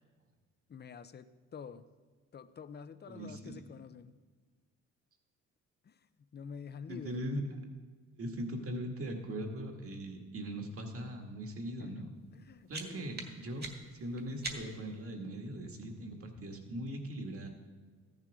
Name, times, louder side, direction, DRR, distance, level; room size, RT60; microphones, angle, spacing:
voice 1, 0.7-1.9 2.3-4.2 5.8-6.0 6.3-7.3 11.8-13.1, left 6 dB, 35° left, 13 dB, 0.6 m, -48 dB
voice 2, 3.1-3.6 6.9-7.4 8.2-12.1 12.7-13.7 13.9-17.5, right 1 dB, 50° right, 3 dB, 2.0 m, -40 dB
sound 1, 12.3-15.0, right 3 dB, 35° right, 1.7 m, -45 dB
14.0 x 10.5 x 3.6 m, 1.5 s
cardioid pair, 90°, 30 cm